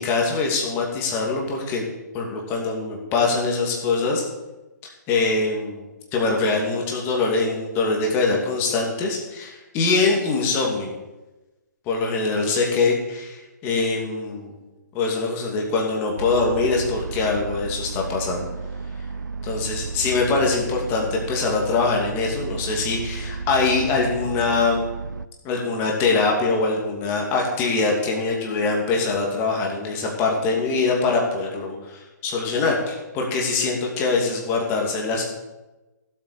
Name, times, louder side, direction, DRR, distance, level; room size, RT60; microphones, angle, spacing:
voice 1, 0.0-1.9 2.1-4.2 5.1-5.8 6.1-10.9 11.9-14.5 14.9-18.5 19.4-24.9 25.4-35.2, left 3 dB, 25° left, 0 dB, 2.6 m, -23 dB
sound 1, 16.2-25.3, right 4 dB, 80° right, 0.5 m, -33 dB
16.5 x 8.3 x 5.0 m, 1.1 s
figure-of-eight pair, 130°, 10 cm